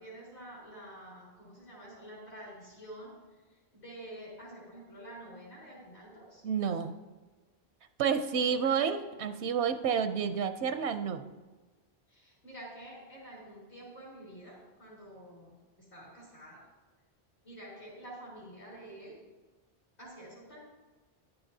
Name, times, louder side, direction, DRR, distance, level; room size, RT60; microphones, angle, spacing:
voice 1, 0.0-3.1 3.7-6.4 8.5-8.9 12.1-15.6 15.9-16.6 17.4-19.2 20.0-20.6, right 1 dB, 80° left, -6 dB, 3.5 m, -48 dB
voice 2, 6.4-6.9 8.0-11.3, right 7 dB, 85° right, 9 dB, 0.9 m, -30 dB
13.0 x 11.0 x 2.7 m, 1.2 s
omnidirectional pair, 1.1 m